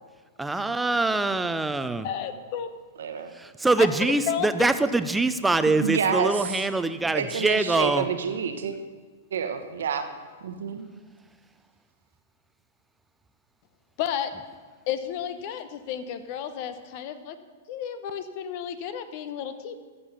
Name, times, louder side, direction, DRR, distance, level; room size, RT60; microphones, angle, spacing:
voice 1, 0.4-2.1 3.3-8.1, right 2 dB, 10° right, 11 dB, 0.6 m, -24 dB
voice 2, 2.0-2.7 3.8-3.9 4.3-4.5 14.0-14.3 14.9-17.4 17.7-19.8, left 9 dB, 50° left, 10 dB, 1.0 m, -32 dB
voice 3, 3.0-3.3 5.7-6.6 7.1-8.7 9.3-10.1 10.4-10.9, right 7 dB, 75° right, 7 dB, 1.1 m, -28 dB
14.5 x 6.9 x 5.6 m, 1.5 s
hypercardioid pair, 110°, 0 cm